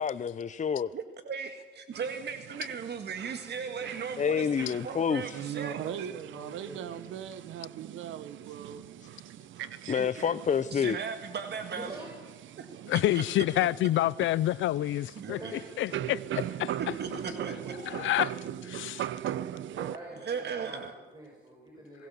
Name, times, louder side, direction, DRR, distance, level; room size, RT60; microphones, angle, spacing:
voice 1, 0.0-0.9 4.2-5.4 9.0-9.1 9.9-11.0, left 7 dB, 40° left, 0.7 m, -28 dB
voice 2, 0.9-5.8 9.9-10.1 10.7-12.0 12.6-13.2 13.6-13.7 15.2-15.5 17.0-18.0 20.2-20.9, right 6 dB, 60° right, 1.9 m, -37 dB
sound 1, 1.9-20.0, right 11 dB, 75° right, 0.8 m, -41 dB
voice 3, 5.1-8.8 9.2-9.3 9.6-10.3, right 10 dB, 90° right, 1.5 m, -39 dB
voice 4, 5.8-7.0 11.7-12.1 12.6-12.7 15.3-16.1 16.9-18.6 19.7-22.1, right 2 dB, 20° right, 6.6 m, -46 dB
voice 5, 12.9-15.4 15.8-16.8 17.8-18.3 18.7-19.1, left 14 dB, 75° left, 0.6 m, -28 dB
23.0 x 20.0 x 7.2 m
cardioid pair, 90°, 20 cm